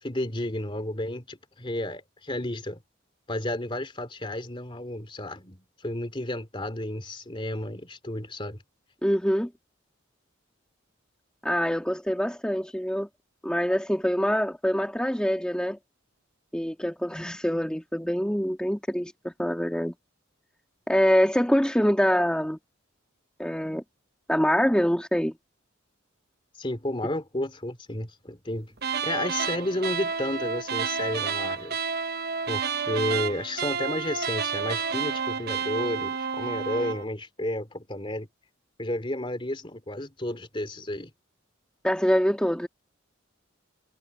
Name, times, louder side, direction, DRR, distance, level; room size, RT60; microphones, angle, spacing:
voice 1, 0.0-2.8 3.3-8.6 26.6-28.8 29.0-31.8 32.5-38.3 38.8-41.1, left 1 dB, 25° left, 2.9 m, -32 dB
voice 2, 9.0-9.5 11.4-13.1 13.4-15.8 16.5-19.9 20.9-22.6 23.4-23.8 24.3-25.4 41.8-42.7, equal, 5° left, 1.8 m, -25 dB
sound 1, 28.8-37.0, right 6 dB, 50° right, 1.0 m, -30 dB
head